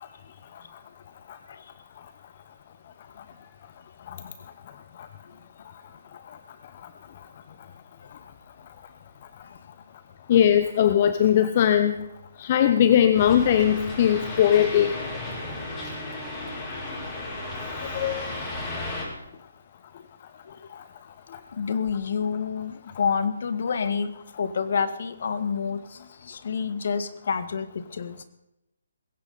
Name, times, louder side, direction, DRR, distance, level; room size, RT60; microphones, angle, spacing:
voice 1, 10.3-11.9 12.4-14.9 17.8-18.2, left 10 dB, 40° left, 10 dB, 0.9 m, -20 dB
sound 1, 13.1-19.0, left 2 dB, 20° left, 6.4 m, -34 dB
voice 2, 21.5-28.2, left 6 dB, 55° left, 11 dB, 1.7 m, -29 dB
20.5 x 17.0 x 4.1 m, 0.87 s
figure-of-eight pair, 145°, 0 cm